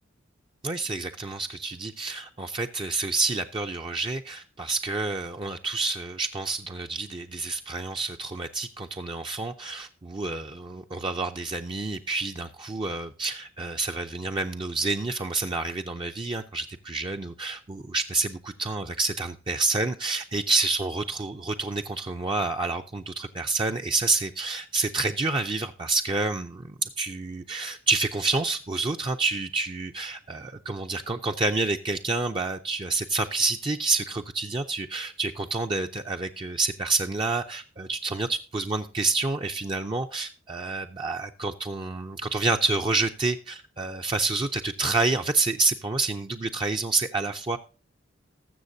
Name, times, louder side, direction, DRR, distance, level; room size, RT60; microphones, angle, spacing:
voice 1, 0.6-47.6, right 3 dB, 25° right, 0.5 m, -28 dB
19.5 x 7.4 x 2.7 m
head